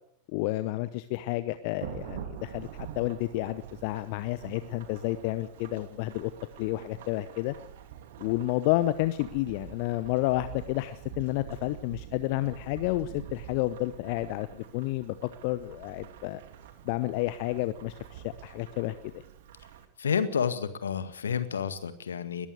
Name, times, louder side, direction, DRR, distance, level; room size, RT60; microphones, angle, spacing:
voice 1, 0.3-6.3 6.6-7.5 8.2-15.1 15.4-16.4 16.8-18.9, left 17 dB, 45° left, 13 dB, 0.9 m, -30 dB
Thunderstorm / Rain, 1.8-19.9, right 10 dB, 55° right, 2.6 m, -46 dB
voice 2, 20.0-22.5, left 7 dB, 70° left, 12 dB, 1.9 m, -30 dB
21.0 x 15.0 x 8.3 m, 0.66 s
figure-of-eight pair, 90°, 0 cm